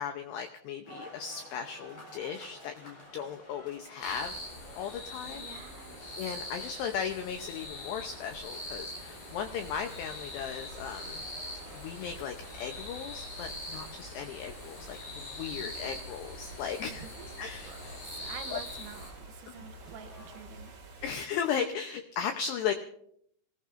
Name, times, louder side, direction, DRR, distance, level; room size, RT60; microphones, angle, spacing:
voice 1, 0.0-4.4 4.8-5.5 6.2-11.2 11.7-17.1 17.4-18.0 18.5-18.6 19.5-19.7 21.0-22.7, left 7 dB, 85° left, 6 dB, 2.4 m, -36 dB
sound 1, 0.8-20.4, left 1 dB, 30° left, 4.2 m, -54 dB
sound 2, 4.0-19.1, left 1 dB, 55° left, 7.1 m, -43 dB
voice 2, 5.3-6.2 15.6-15.9 16.9-20.7, right 9 dB, 85° right, 9 dB, 3.6 m, -48 dB
sound 3, 8.5-21.1, right 2 dB, 45° right, 1.9 m, -50 dB
26.5 x 18.5 x 2.6 m, 0.70 s
omnidirectional pair, 6.0 m